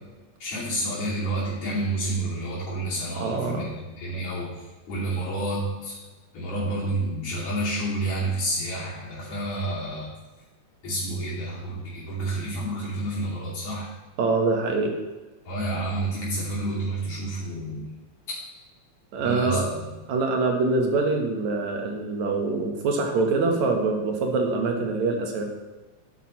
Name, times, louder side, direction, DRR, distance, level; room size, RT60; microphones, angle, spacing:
voice 1, 0.4-6.0 6.3-10.1 10.8-13.9 15.5-17.9 18.3-18.4 19.2-19.8, right 1 dB, 65° left, -8 dB, 4.0 m, -29 dB
voice 2, 3.2-3.6 14.2-15.0 19.1-19.7 20.1-25.4, right 3 dB, 75° right, 2 dB, 2.6 m, -24 dB
11.0 x 9.8 x 3.2 m, 1.2 s
omnidirectional pair, 3.4 m